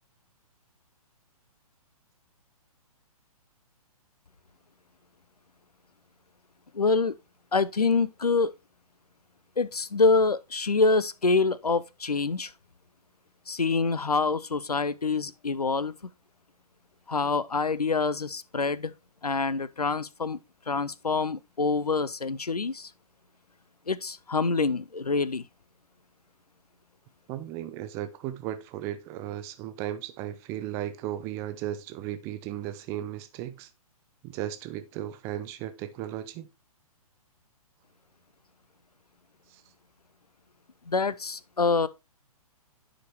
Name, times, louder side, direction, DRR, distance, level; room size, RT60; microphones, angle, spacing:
voice 1, 6.7-7.1 7.5-8.5 9.6-12.5 13.5-15.9 17.1-18.9 19.2-20.4 20.7-22.9 23.9-25.4 40.9-41.9, left 4 dB, 85° left, 0.5 m, -26 dB
voice 2, 27.3-33.7 34.2-36.5 39.5-39.6, right 12 dB, 15° right, 0.4 m, -35 dB
10.0 x 5.1 x 2.9 m
figure-of-eight pair, 125°, 19 cm